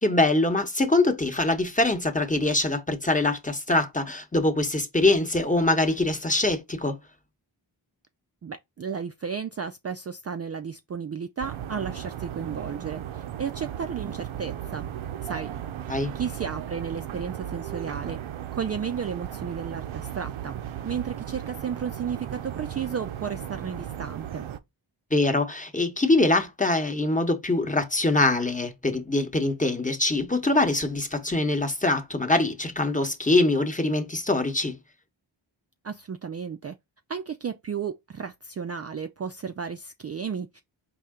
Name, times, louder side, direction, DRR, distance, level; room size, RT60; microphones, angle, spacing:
voice 1, 0.0-7.0 15.9-16.1 25.1-34.8, left 2 dB, 15° left, 0.9 m, -23 dB
voice 2, 8.4-14.9 15.2-15.5 16.1-18.2 18.5-24.4 35.8-36.8 37.1-40.6, right 6 dB, 35° right, 0.4 m, -33 dB
sound 1, 11.4-24.6, right 10 dB, 75° right, 0.6 m, -36 dB
4.2 x 2.7 x 3.7 m
cardioid pair, 45°, 48 cm